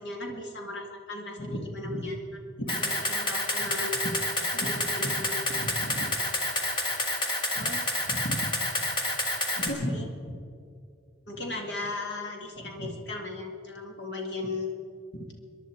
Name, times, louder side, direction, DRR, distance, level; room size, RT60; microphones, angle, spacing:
voice 1, 0.0-4.1 4.5-6.1 7.5-8.5 9.5-10.4 11.3-14.7 15.1-15.3, left 1 dB, 75° left, 2 dB, 2.1 m, -35 dB
Camera, 2.7-9.7, left 1 dB, 25° left, 1.7 m, -29 dB
26.0 x 11.0 x 4.6 m, 2.3 s
head